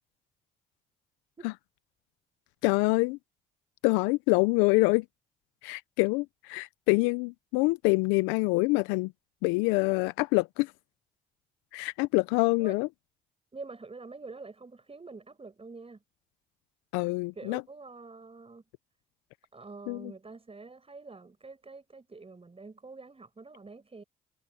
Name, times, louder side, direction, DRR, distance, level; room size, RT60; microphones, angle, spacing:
voice 1, 2.6-3.2 3.8-5.0 5.6-9.1 9.4-10.7 11.7-12.9 16.9-17.6 19.9-20.1, left 25 dB, 80° left, 0.7 m, -26 dB
voice 2, 13.5-16.0 17.3-18.6 19.5-24.0, right 3 dB, 30° right, 6.2 m, -46 dB
hypercardioid pair, 50°, 20 cm